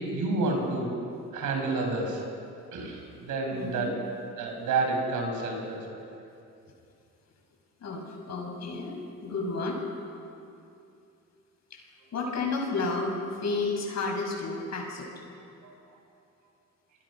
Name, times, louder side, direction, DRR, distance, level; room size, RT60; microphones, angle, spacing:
voice 1, 0.1-0.9 1.3-2.2 2.7-3.9 4.4-5.8 15.6-15.7, right 3 dB, 85° right, 2 dB, 5.9 m, -29 dB
voice 2, 3.5-3.9 7.8-9.8 11.7-11.8 12.1-13.1 13.4-15.1, left 3 dB, 60° left, 1 dB, 6.9 m, -31 dB
29.5 x 22.0 x 6.3 m, 2.6 s
cardioid pair, 90°, 30 cm